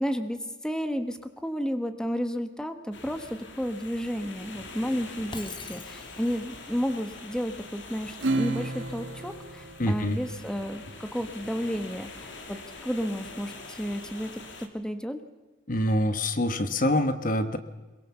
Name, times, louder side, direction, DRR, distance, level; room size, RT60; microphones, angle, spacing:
voice 1, 0.0-14.4 14.7-15.2, equal, 5° left, 8 dB, 1.2 m, -32 dB
sound 1, 2.9-14.7, left 3 dB, 75° left, 2.7 m, -44 dB
Shatter, 5.3-6.5, left 4 dB, 25° left, 1.7 m, -43 dB
Acoustic guitar / Strum, 8.2-11.1, right 2 dB, 75° right, 1.7 m, -33 dB
voice 2, 9.8-10.2 15.7-17.6, left 1 dB, 45° left, 10 dB, 1.2 m, -25 dB
22.5 x 22.5 x 7.1 m, 1.2 s
head